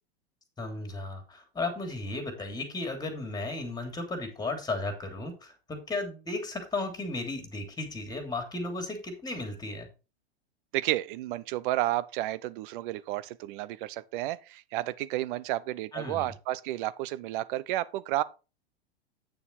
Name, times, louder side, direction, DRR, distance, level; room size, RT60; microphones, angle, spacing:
voice 1, 0.6-9.9 15.9-16.3, left 2 dB, 10° left, 3.0 m, -35 dB
voice 2, 10.7-18.2, right 15 dB, 50° right, 0.8 m, -31 dB
9.0 x 7.0 x 4.1 m
hypercardioid pair, 100°, 32 cm